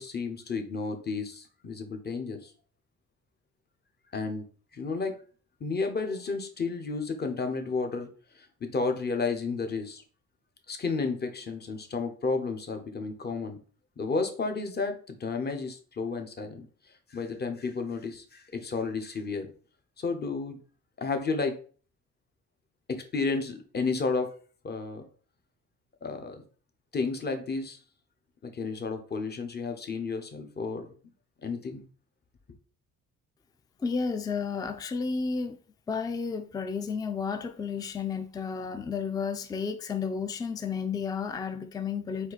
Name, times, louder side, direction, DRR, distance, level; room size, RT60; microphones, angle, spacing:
voice 1, 0.0-2.5 4.1-4.4 4.7-5.2 5.6-8.1 8.3-10.0 10.7-13.6 14.0-16.7 17.1-19.5 20.0-20.6 21.0-21.6 22.9-24.3 24.6-25.0 26.0-26.4 26.9-27.8 28.4-30.9 31.4-31.8, left 4 dB, 35° left, 0.9 m, -32 dB
voice 2, 33.8-35.6 35.9-42.3, left 5 dB, 15° left, 0.4 m, -32 dB
4.4 x 2.6 x 4.0 m
cardioid pair, 90°, 30 cm